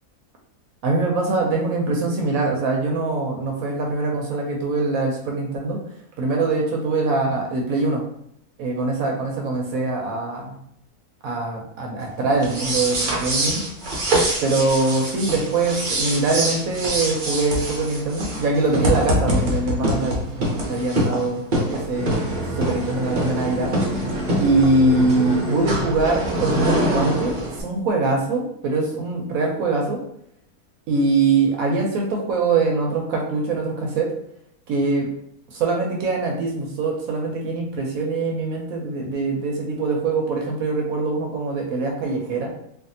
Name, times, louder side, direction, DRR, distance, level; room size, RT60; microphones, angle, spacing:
voice 1, 0.8-5.8 6.2-8.0 8.6-10.5 11.2-13.6 14.4-21.4 21.7-23.7 24.4-30.0 30.9-34.1 34.7-35.1 35.5-42.5, right 3 dB, 75° right, 0 dB, 1.0 m, -23 dB
sound 1, 12.4-27.6, right 1 dB, 45° right, 0.6 m, -24 dB
3.4 x 2.3 x 2.7 m, 0.72 s
omnidirectional pair, 1.6 m